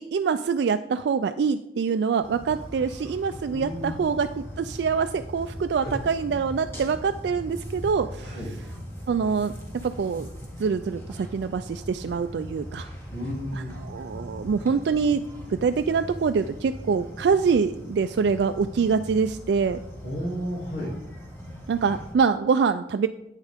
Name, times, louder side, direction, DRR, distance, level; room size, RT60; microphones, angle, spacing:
voice 1, 0.0-8.4 9.1-9.5 9.8-10.3 10.6-12.9 13.5-15.2 15.5-19.8 21.7-23.1, right 5 dB, 70° right, 8 dB, 0.3 m, -25 dB
sound 1, 2.2-22.1, equal, 15° left, 1.7 m, -40 dB
voice 2, 3.5-4.0 5.8-5.9 8.2-8.5 13.1-13.8 20.0-20.9, equal, 65° left, -8 dB, 2.7 m, -33 dB
10.0 x 8.3 x 3.5 m, 0.89 s
head